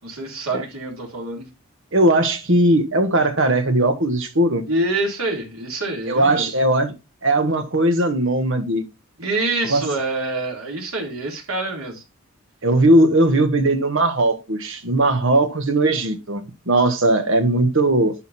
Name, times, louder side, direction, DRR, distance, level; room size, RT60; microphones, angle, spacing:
voice 1, 0.0-1.5 4.7-6.5 9.2-12.0, right 2 dB, 90° right, 3.6 m, -26 dB
voice 2, 1.9-4.7 6.1-6.9 7.2-8.8 9.6-9.9 12.6-18.1, right 1 dB, 65° right, 1.5 m, -18 dB
11.5 x 4.0 x 4.3 m
head